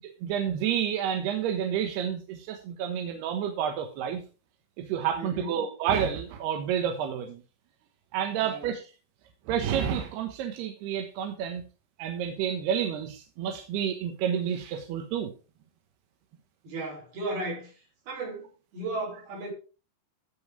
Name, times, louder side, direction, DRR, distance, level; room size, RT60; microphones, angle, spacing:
voice 1, 0.0-4.2 4.8-7.4 8.1-8.8 9.5-11.6 12.0-15.3, right 9 dB, 70° right, 2.8 m, -29 dB
voice 2, 5.1-5.5 8.4-8.7 16.6-19.5, right 2 dB, 55° right, 6.5 m, -35 dB
15.0 x 5.3 x 4.9 m
omnidirectional pair, 5.5 m